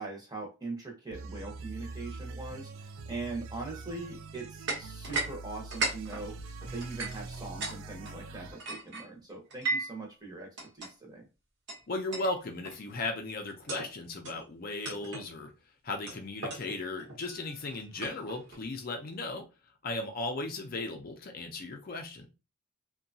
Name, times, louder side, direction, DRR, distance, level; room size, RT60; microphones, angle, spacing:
voice 1, 0.0-6.4 6.7-11.3, right 3 dB, 20° right, 0 dB, 0.7 m, -41 dB
sound 1, 1.1-8.6, right 3 dB, 75° right, 0.4 m, -43 dB
sound 2, 4.7-5.3 5.6-7.8 8.0-10.0 10.6-10.9 11.7-11.8 12.1-12.3 12.6-12.9 13.5-13.9 14.2-14.4 14.8-15.3 16.1-18.6, right 3 dB, 55° right, 0.9 m, -36 dB
voice 2, 11.9-15.5 15.8-19.4 19.8-22.3, left 2 dB, 45° left, 4 dB, 0.4 m, -36 dB
2.8 x 2.2 x 2.6 m, 0.29 s
head